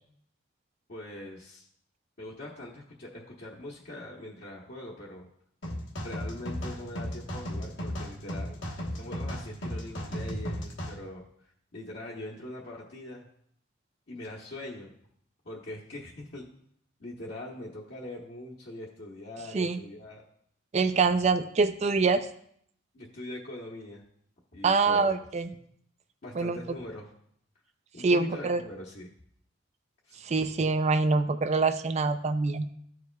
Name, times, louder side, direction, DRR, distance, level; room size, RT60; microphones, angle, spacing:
voice 1, 0.9-1.7 2.2-5.3 6.0-8.6 8.9-11.2 11.7-13.2 14.1-14.9 15.4-16.4 17.0-20.2 22.9-24.0 24.5-25.2 26.2-27.1 27.9-29.1 30.1-30.2, left 1 dB, 60° left, -5 dB, 1.0 m, -42 dB
sound 1, 5.6-11.0, equal, 75° left, 1.2 m, -35 dB
voice 2, 20.7-22.3 24.6-25.5 26.4-26.6 28.0-28.6 30.2-32.7, right 4 dB, 35° right, 11 dB, 0.4 m, -25 dB
13.5 x 4.8 x 2.3 m, 0.66 s
head